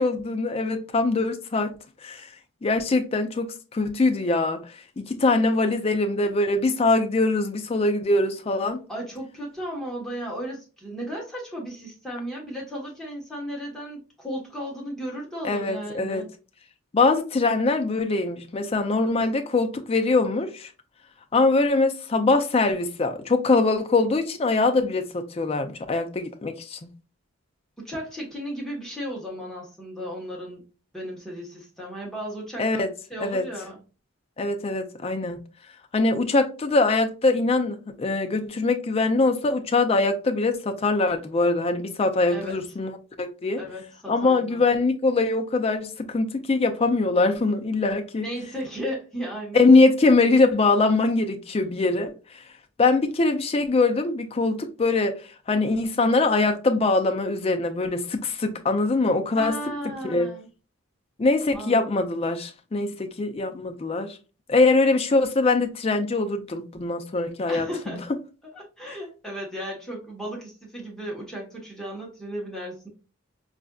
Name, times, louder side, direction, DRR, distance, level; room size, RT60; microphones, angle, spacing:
voice 1, 0.0-1.7 2.0-2.3 2.6-8.8 15.4-16.2 16.9-20.7 21.3-26.9 32.6-32.9 33.2-33.5 34.4-35.4 35.9-42.9 43.2-43.6 44.1-48.3 49.5-52.4 52.8-59.6 60.0-60.3 61.2-64.2 64.5-68.0, left 3 dB, 30° left, 0.4 m, -23 dB
voice 2, 8.9-16.3 27.8-30.6 30.9-32.8 33.1-33.8 42.3-42.5 43.6-44.6 48.2-49.6 59.3-60.5 61.5-61.9 67.5-68.0 68.5-72.9, equal, ahead, 1.1 m, -35 dB
4.2 x 2.4 x 2.3 m
head